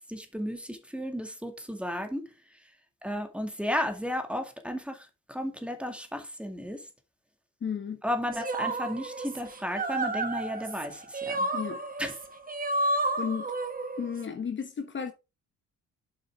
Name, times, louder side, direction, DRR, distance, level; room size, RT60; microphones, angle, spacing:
voice 1, 0.0-2.2 3.0-6.8 8.0-11.5 12.0-12.1, equal, 5° right, 2.1 m, -33 dB
voice 2, 7.6-8.0 11.5-11.8 13.2-13.5 14.0-15.1, left 6 dB, 40° left, 1.1 m, -33 dB
sound 1, 8.3-14.2, right 2 dB, 30° right, 1.2 m, -31 dB
8.3 x 5.6 x 3.6 m
cardioid pair, 90°, 30 cm